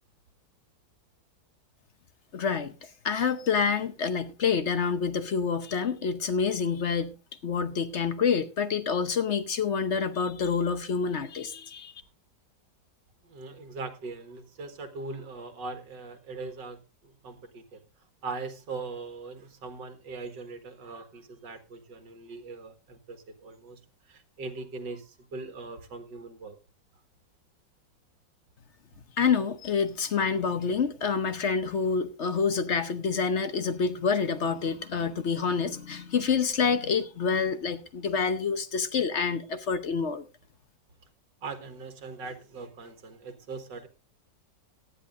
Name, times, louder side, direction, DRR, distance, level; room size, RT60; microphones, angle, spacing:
voice 1, 2.3-2.7 3.0-7.1 7.4-11.9 29.2-40.3, left 5 dB, 50° left, 1.0 m, -27 dB
voice 2, 13.2-17.8 18.2-23.8 24.1-26.6 41.4-43.9, right 3 dB, 70° right, 2.2 m, -40 dB
18.0 x 11.5 x 2.5 m
omnidirectional pair, 2.0 m